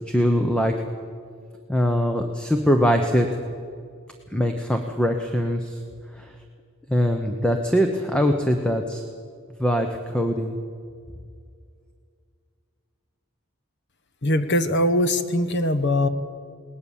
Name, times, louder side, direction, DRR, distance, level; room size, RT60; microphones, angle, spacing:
voice 1, 0.1-0.7 1.7-3.3 4.3-5.8 6.2-6.3 6.9-9.0 9.6-10.6, equal, 5° left, 4 dB, 0.9 m, -22 dB
voice 2, 14.2-16.1, left 1 dB, 50° left, 11 dB, 1.2 m, -21 dB
20.5 x 18.5 x 7.3 m, 2.2 s
head